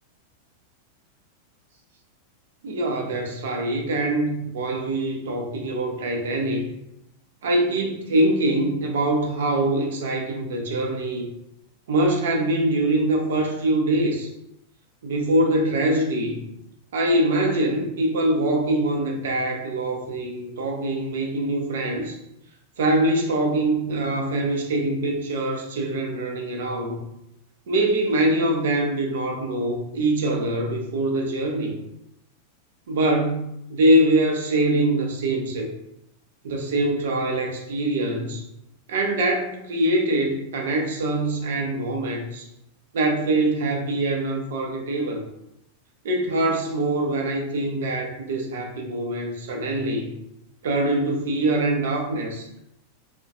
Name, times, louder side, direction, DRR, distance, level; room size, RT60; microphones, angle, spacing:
voice 1, 2.6-6.7 7.4-11.3 11.9-14.3 15.0-16.5 16.9-22.2 22.8-27.0 27.7-31.8 32.9-35.7 36.4-38.4 38.9-42.5 42.9-45.2 46.0-50.1 50.6-52.5, right 1 dB, 60° right, 2 dB, 0.5 m, -23 dB
2.3 x 2.1 x 2.6 m, 0.81 s
figure-of-eight pair, 90°, 0 cm